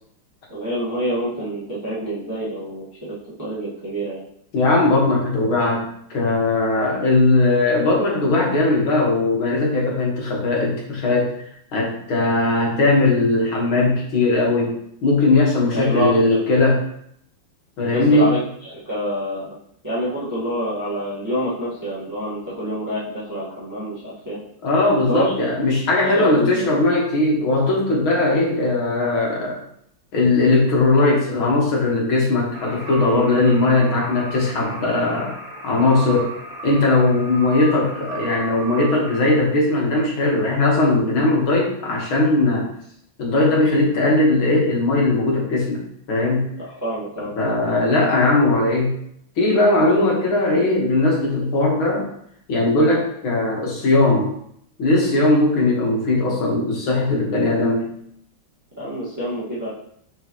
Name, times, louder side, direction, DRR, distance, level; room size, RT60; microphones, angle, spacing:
voice 1, 0.5-2.8 3.4-4.2 15.7-16.4 17.9-19.5 19.8-24.4 25.1-25.3 26.0-26.7 46.6-47.3 58.8-59.7, equal, 10° right, -10 dB, 1.5 m, -27 dB
voice 2, 4.5-11.3 11.7-16.8 17.8-18.3 24.6-29.6 30.1-35.3 35.6-36.3 36.6-42.7 43.2-45.8 46.1-46.4 47.4-48.9 49.4-52.1 52.5-54.3 54.8-57.9, left 2 dB, 65° left, -2 dB, 2.4 m, -19 dB
sound 1, 32.5-39.3, right 2 dB, 65° right, 1.8 m, -34 dB
6.7 x 4.9 x 3.1 m, 0.69 s
omnidirectional pair, 2.4 m